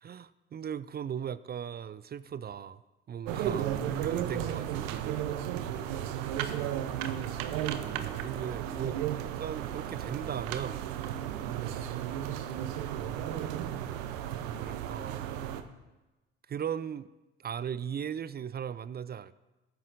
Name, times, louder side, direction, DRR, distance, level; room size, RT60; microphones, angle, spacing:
voice 1, 0.0-2.8 3.1-5.4 7.7-10.8 11.6-11.9 13.1-14.1 14.5-15.3 16.5-17.1 17.4-19.3, right 8 dB, 30° right, 17 dB, 0.4 m, -38 dB
sound 1, 3.3-15.6, right 10 dB, 75° right, 0.7 m, -34 dB
18.0 x 9.3 x 2.6 m, 1.1 s
figure-of-eight pair, 45°, 33 cm